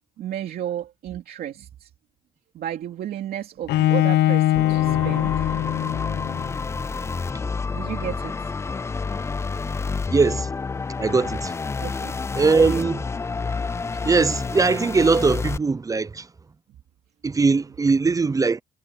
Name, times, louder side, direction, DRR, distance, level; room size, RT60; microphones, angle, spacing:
voice 1, 0.2-1.9 2.5-5.6 6.8-6.9 7.7-8.5 10.1-10.2 11.8-12.1 12.6-12.8, right 11 dB, 65° right, 2.7 m, -33 dB
Bowed string instrument, 3.7-6.6, left 14 dB, 75° left, 0.9 m, -21 dB
sound 1, 4.5-15.6, left 4 dB, 15° left, 0.4 m, -29 dB
voice 2, 10.1-10.5 11.0-11.6 12.4-13.0 14.0-16.3 17.2-18.6, right 4 dB, 20° right, 0.6 m, -20 dB
cardioid pair, 110°, 17 cm